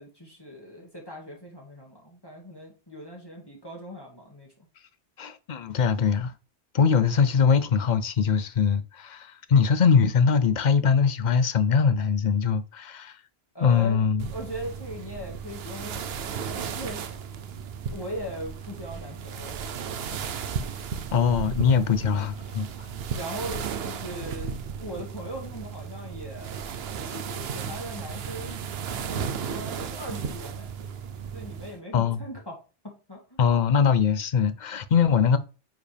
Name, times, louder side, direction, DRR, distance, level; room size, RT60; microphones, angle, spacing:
voice 1, 0.0-4.5 13.5-17.0 17.9-19.7 20.1-20.2 23.2-24.6 24.8-26.6 27.0-30.8 31.3-32.6 32.8-33.2, equal, 20° left, 2.0 m, -39 dB
voice 2, 5.2-6.3 6.7-13.2 13.6-14.3 21.1-22.7 31.9-32.2 33.4-35.4, left 6 dB, 50° left, 0.7 m, -22 dB
sound 1, 14.2-31.8, right 7 dB, 75° right, 0.9 m, -35 dB
9.4 x 5.0 x 3.4 m
omnidirectional pair, 1.1 m